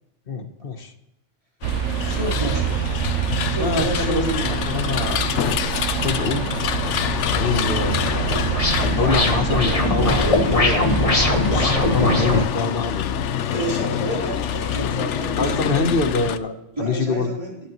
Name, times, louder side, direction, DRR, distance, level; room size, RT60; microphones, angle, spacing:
voice 1, 0.3-0.9 3.6-4.2 4.7-5.3 6.0-6.5 7.3-8.0 9.0-13.3 15.4-17.4, left 4 dB, 55° left, 8 dB, 1.2 m, -25 dB
sound 1, 1.6-16.4, left 9 dB, 75° left, 0.9 m, -26 dB
sound 2, 1.6-12.4, right 10 dB, 85° right, 0.9 m, -27 dB
voice 2, 2.0-3.0 3.5-4.5 13.5-15.9 16.8-17.6, right 1 dB, 25° right, -3 dB, 3.7 m, -29 dB
sound 3, 7.5-12.4, left 2 dB, 30° left, 1.3 m, -22 dB
20.0 x 8.5 x 3.0 m, 0.88 s
omnidirectional pair, 1.2 m